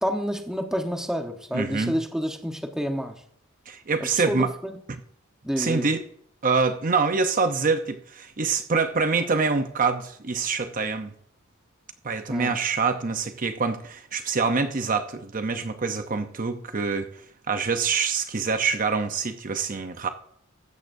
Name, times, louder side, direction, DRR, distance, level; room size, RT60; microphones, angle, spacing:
voice 1, 0.0-3.1 4.0-4.7 5.4-5.9 12.3-12.5, equal, 5° right, 1.1 m, -29 dB
voice 2, 1.5-1.9 3.7-4.5 5.6-6.0 6.4-11.1 12.0-17.1 17.5-20.1, right 4 dB, 40° right, 0.8 m, -25 dB
15.0 x 13.5 x 2.7 m
head